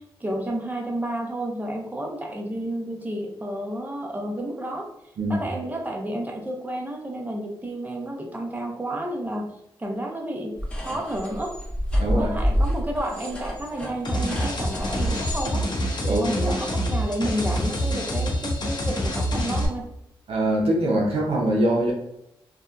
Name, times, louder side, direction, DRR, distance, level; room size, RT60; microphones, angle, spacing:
voice 1, 0.0-4.9 5.3-9.5 9.8-10.6 10.8-11.5 12.1-15.6 16.1-19.9, right 1 dB, 15° right, 1 dB, 0.6 m, -31 dB
sound 1, 10.6-15.5, equal, 10° left, 0.8 m, -28 dB
voice 2, 12.0-12.3 16.0-16.5 20.3-21.9, right 1 dB, 90° right, 0 dB, 0.5 m, -23 dB
sound 2, 14.0-19.7, equal, 45° left, 0.7 m, -26 dB
2.7 x 2.2 x 2.3 m, 0.82 s
cardioid pair, 60°, 10 cm